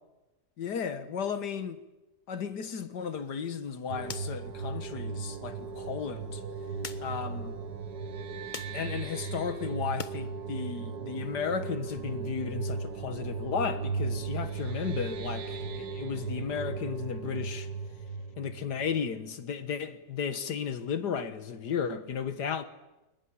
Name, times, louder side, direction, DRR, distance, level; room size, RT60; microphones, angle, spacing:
voice 1, 0.6-1.8 2.3-6.4 7.0-7.6 8.7-17.7 18.4-22.6, left 6 dB, 85° left, 2.0 m, -34 dB
sound 1, 3.0-10.2 10.6-11.7, left 5 dB, 35° left, 0.9 m, -49 dB
sound 2, 3.9-19.4, right 4 dB, 85° right, 2.0 m, -36 dB
21.5 x 20.0 x 10.0 m
omnidirectional pair, 1.7 m